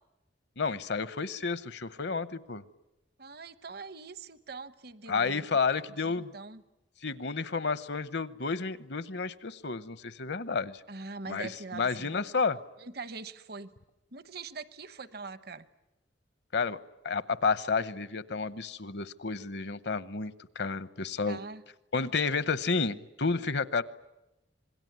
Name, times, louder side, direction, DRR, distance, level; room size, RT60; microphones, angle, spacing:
voice 1, 0.6-2.6 5.1-6.3 7.0-10.8 11.3-12.6 16.5-16.8 17.0-21.4 21.9-23.8, left 4 dB, 60° left, 16 dB, 0.9 m, -31 dB
voice 2, 3.2-6.6 10.9-12.1 12.8-13.7 14.1-15.7 21.3-21.6, right 4 dB, 55° right, 14 dB, 1.0 m, -43 dB
27.0 x 21.0 x 9.4 m, 0.93 s
head